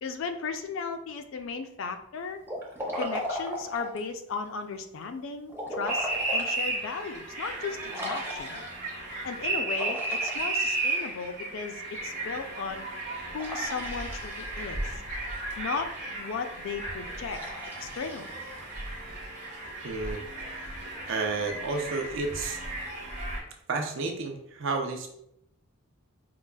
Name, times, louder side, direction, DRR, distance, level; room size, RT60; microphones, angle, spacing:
voice 1, 0.0-2.4 3.0-8.6 9.2-12.9 13.3-15.0 15.6-15.9 16.2-17.4 17.8-18.4, left 5 dB, 65° left, 7 dB, 0.4 m, -36 dB
Liquid, 2.4-4.1 5.5-6.6 7.1-7.2 7.9-8.9 9.7-11.3 13.4-14.7 17.3-18.9, equal, 10° right, 0.5 m, -37 dB
sound 1, 5.9-23.4, right 2 dB, 40° right, 0.9 m, -34 dB
voice 2, 19.8-20.2 21.1-22.6 23.7-25.1, right 3 dB, 60° right, 3 dB, 0.5 m, -31 dB
4.7 x 2.3 x 2.2 m, 0.75 s
head